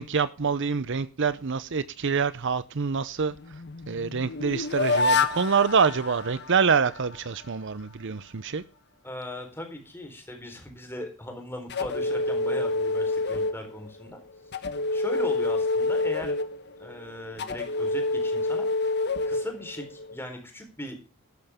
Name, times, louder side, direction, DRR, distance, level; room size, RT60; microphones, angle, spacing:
voice 1, 0.0-3.3 3.9-8.6, right 5 dB, 55° right, 0.7 m, -26 dB
sound 1, 3.2-7.2 11.7-14.0 14.5-20.2, left 3 dB, 50° left, 1.3 m, -28 dB
voice 2, 9.0-14.2 14.9-16.3 16.8-18.7 19.3-21.0, left 1 dB, 10° left, 4.1 m, -38 dB
13.0 x 12.5 x 3.6 m
head